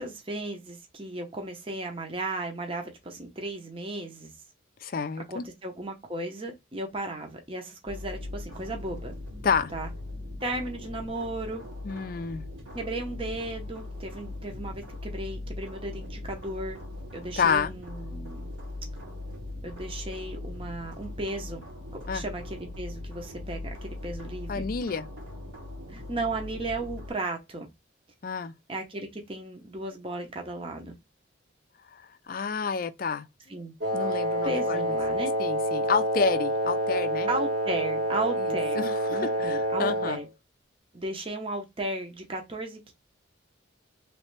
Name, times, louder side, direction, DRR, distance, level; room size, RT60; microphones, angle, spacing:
voice 1, 0.0-4.3 5.3-9.1 9.7-9.9 10.4-11.6 12.7-16.8 17.1-18.5 19.6-21.6 21.9-24.7 25.9-27.7 28.7-31.0 33.5-33.7 34.4-35.3 37.3-40.3 40.9-42.9, right 2 dB, 30° right, 0.8 m, -35 dB
voice 2, 4.8-5.4 9.4-9.7 11.8-12.4 17.4-17.7 22.1-22.2 24.5-25.1 28.2-28.5 31.9-33.3 33.9-34.9 35.4-37.3 38.8-40.2, left 5 dB, 45° left, 0.4 m, -29 dB
sound 1, 7.9-27.1, left 2 dB, 85° right, 1.8 m, -40 dB
Wind instrument woodwind instrument, 33.8-40.3, right 1 dB, 55° right, 1.0 m, -28 dB
3.3 x 3.1 x 3.1 m
head